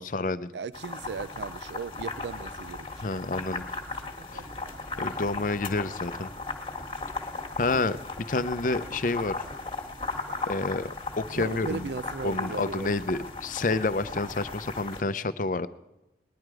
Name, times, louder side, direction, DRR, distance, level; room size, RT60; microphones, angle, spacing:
voice 1, 0.0-0.5 3.0-3.6 4.3-4.5 5.0-6.3 7.6-8.0 8.3-9.4 10.5-10.9 11.2-11.9 12.2-15.7, left 3 dB, 50° left, 13 dB, 0.6 m, -29 dB
voice 2, 0.5-3.2 4.2-4.7 10.3-10.4 11.4-12.9, right 5 dB, 80° right, 17 dB, 0.5 m, -37 dB
sound 1, 0.7-15.0, left 3 dB, 30° left, 1.7 m, -36 dB
20.0 x 11.0 x 4.8 m, 0.97 s
head